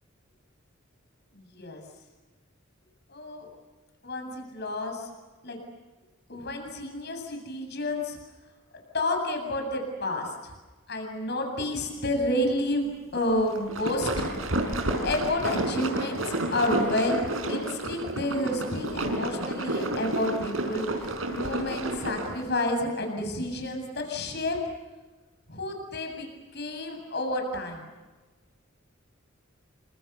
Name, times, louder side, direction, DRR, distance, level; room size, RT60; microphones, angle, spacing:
voice 1, 1.3-1.8 3.1-3.5 4.0-5.1 5.4-5.6 6.3-8.2 8.9-10.5 10.9-14.1 14.6-17.2 17.5-21.1 21.3-24.6 25.5-26.3 26.5-27.9, left 1 dB, 55° left, 3 dB, 7.8 m, -30 dB
sound 1, 13.5-22.4, right 1 dB, 80° right, 5.5 m, -30 dB
29.5 x 26.5 x 7.1 m, 1.2 s
head